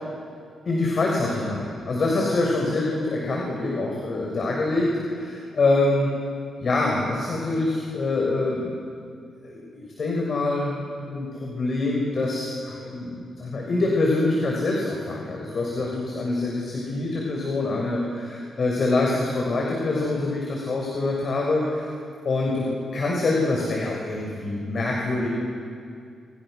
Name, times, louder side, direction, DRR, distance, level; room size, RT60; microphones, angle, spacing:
voice 1, 0.7-6.1 6.6-8.8 9.4-21.9 22.2-22.7 22.9-25.3, left 2 dB, 50° left, -2 dB, 6.4 m, -25 dB
30.0 x 29.5 x 6.7 m, 2.3 s
cardioid pair, 95°, 0 cm